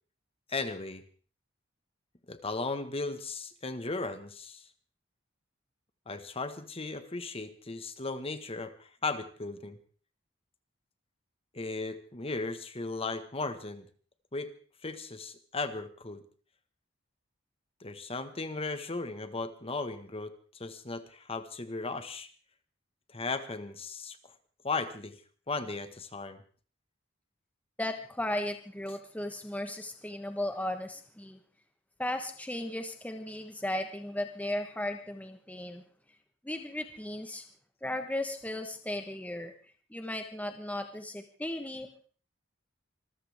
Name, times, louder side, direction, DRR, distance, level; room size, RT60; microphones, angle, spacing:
voice 1, 0.5-1.0 2.3-4.7 6.1-9.8 11.5-13.9 14.3-14.5 14.8-16.2 17.8-22.3 23.1-24.2 24.6-25.2 25.5-26.4, left 3 dB, 30° left, 9 dB, 1.5 m, -36 dB
voice 2, 27.8-31.4 32.0-35.8 36.4-37.4 37.8-39.5 39.9-41.9, left 1 dB, 10° left, 6 dB, 1.2 m, -36 dB
25.5 x 14.5 x 3.5 m, 0.42 s
head